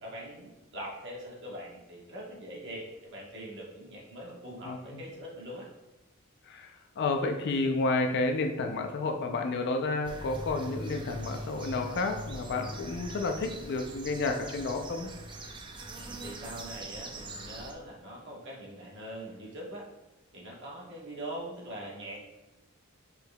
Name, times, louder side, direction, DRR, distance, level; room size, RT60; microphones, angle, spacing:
voice 1, 0.0-5.7 16.0-19.9 20.3-22.3, right 1 dB, 60° right, -3 dB, 1.3 m, -42 dB
voice 2, 4.7-5.0 6.5-15.1, left 3 dB, 55° left, 5 dB, 0.4 m, -31 dB
sound 1, 10.0-17.7, right 1 dB, 20° right, 0.5 m, -42 dB
5.1 x 4.6 x 2.2 m, 1.0 s
head